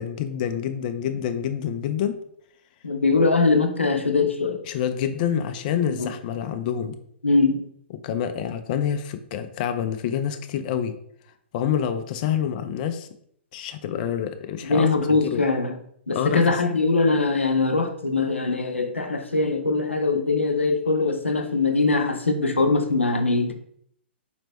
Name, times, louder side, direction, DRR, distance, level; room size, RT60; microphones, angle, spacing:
voice 1, 0.0-2.2 4.7-7.0 8.0-11.0 11.5-13.1 13.5-15.4 16.1-16.6, left 9 dB, 45° left, 0.4 m, -27 dB
voice 2, 2.8-4.6 5.9-6.1 7.2-7.6 14.6-15.8 16.1-23.5, left 3 dB, 90° left, 0.6 m, -22 dB
4.3 x 2.9 x 3.5 m
figure-of-eight pair, 115°, 6 cm